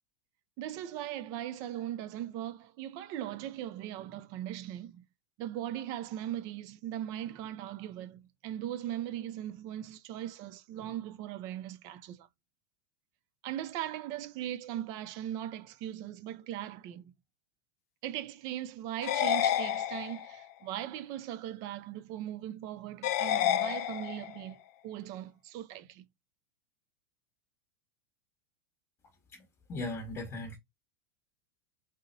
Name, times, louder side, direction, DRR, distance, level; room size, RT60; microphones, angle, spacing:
voice 1, 0.6-5.0 5.4-12.3 13.4-17.1 18.0-26.1, right 12 dB, 40° right, 0.5 m, -39 dB
sound 1, 19.0-20.4 23.0-24.4, left 12 dB, 60° left, 0.5 m, -30 dB
voice 2, 29.7-30.6, left 2 dB, 25° left, 1.1 m, -37 dB
3.8 x 2.1 x 3.9 m
supercardioid pair, 160°, 10 cm